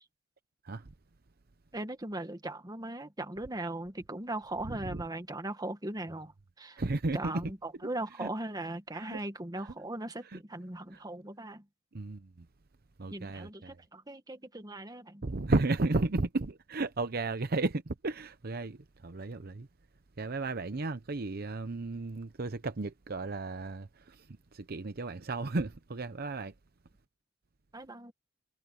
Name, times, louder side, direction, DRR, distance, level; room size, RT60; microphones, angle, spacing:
voice 1, 1.7-6.8 7.1-11.6 13.1-15.2 27.7-28.1, right 1 dB, 20° right, 1.6 m, -39 dB
voice 2, 4.7-5.0 6.8-7.5 8.2-8.3 8.9-9.2 9.6-9.7 10.3-10.4 10.9-11.0 11.9-12.5 13.0-13.8 15.2-19.7 20.2-26.5, right 2 dB, 55° right, 0.8 m, -34 dB
head